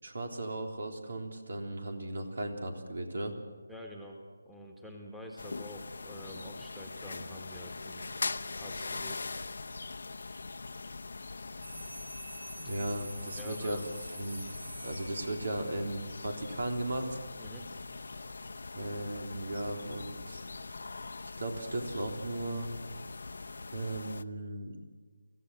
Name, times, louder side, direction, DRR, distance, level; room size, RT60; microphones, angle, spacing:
voice 1, 0.0-3.3 12.5-13.8 14.1-14.4 14.8-17.2 18.7-20.4 21.4-22.7 23.7-24.8, right 1 dB, 65° right, 3 dB, 3.6 m, -36 dB
voice 2, 3.7-8.0 8.5-9.3 13.4-13.9 17.4-17.6, left 1 dB, ahead, -1 dB, 1.9 m, -47 dB
sound 1, 5.4-24.2, left 3 dB, 65° left, 0.8 m, -42 dB
sound 2, 11.6-15.6, right 1 dB, 90° right, 6.2 m, -47 dB
25.5 x 15.5 x 8.0 m, 1.4 s
figure-of-eight pair, 160°, 0 cm